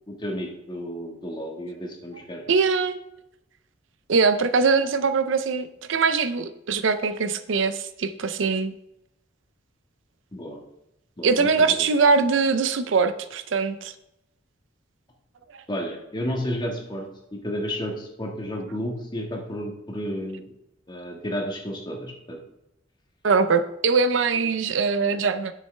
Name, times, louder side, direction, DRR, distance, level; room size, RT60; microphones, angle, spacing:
voice 1, 0.1-2.4 10.3-10.6 11.2-11.8 15.7-17.0 17.3-20.5 20.9-22.4, equal, 25° left, 0 dB, 1.6 m, -32 dB
voice 2, 2.5-3.0 4.1-8.7 11.2-13.9 23.2-25.5, right 4 dB, 75° right, 11 dB, 0.5 m, -22 dB
9.7 x 7.5 x 3.3 m, 0.85 s
head